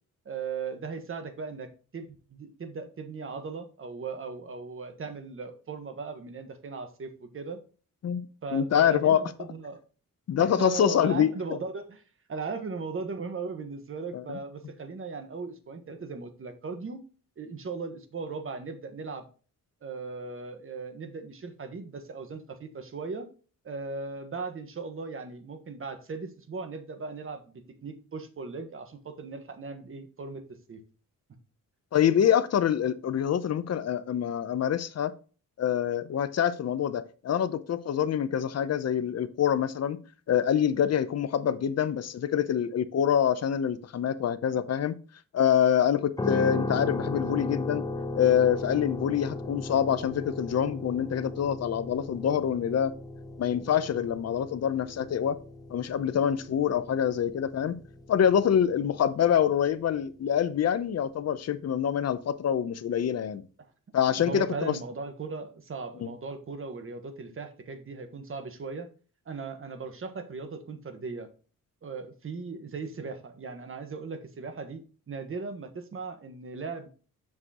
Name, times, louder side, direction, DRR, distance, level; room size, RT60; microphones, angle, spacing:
voice 1, 0.2-7.6 8.4-9.8 10.4-12.0 12.3-17.0 17.4-19.3 19.8-23.3 23.6-30.4 30.7-30.8 64.2-68.9 69.2-71.3 71.8-76.9, right 4 dB, 40° right, 1.3 m, -38 dB
voice 2, 8.5-9.2 10.3-11.3 14.1-14.4 31.9-35.1 35.6-40.0 40.3-44.9 45.3-47.8 48.1-52.9 53.4-55.4 55.7-57.7 58.1-63.4 63.9-64.8 66.0-66.1, left 9 dB, 50° left, 0.7 m, -26 dB
sound 1, 46.2-60.2, left 2 dB, 10° left, 0.9 m, -37 dB
7.5 x 6.2 x 3.0 m
cardioid pair, 125°, 33 cm